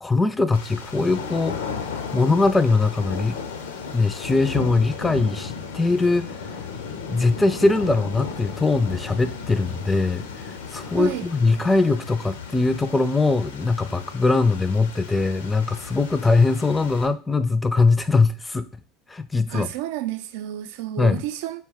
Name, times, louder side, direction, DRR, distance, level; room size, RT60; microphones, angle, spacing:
voice 1, 0.0-1.7 2.1-3.3 3.9-6.3 7.1-18.6 19.1-19.7 21.0-21.2, left 3 dB, 15° left, 0.4 m, -21 dB
sound 1, 0.5-17.1, left 5 dB, 75° left, 0.5 m, -35 dB
voice 2, 10.9-11.2 19.5-21.6, right 13 dB, 70° right, 0.4 m, -30 dB
4.2 x 2.2 x 3.4 m
hypercardioid pair, 70°, 0 cm